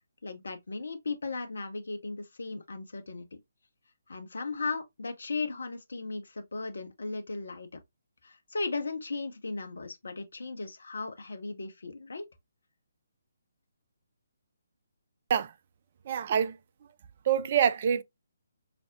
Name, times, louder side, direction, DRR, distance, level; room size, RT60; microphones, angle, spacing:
voice 1, 0.2-3.4 4.1-7.8 8.2-12.3, left 3 dB, 65° left, 0.7 m, -36 dB
voice 2, 16.1-16.5 17.3-18.0, right 8 dB, 40° right, 0.4 m, -25 dB
5.0 x 2.0 x 2.4 m
figure-of-eight pair, 140°, 0 cm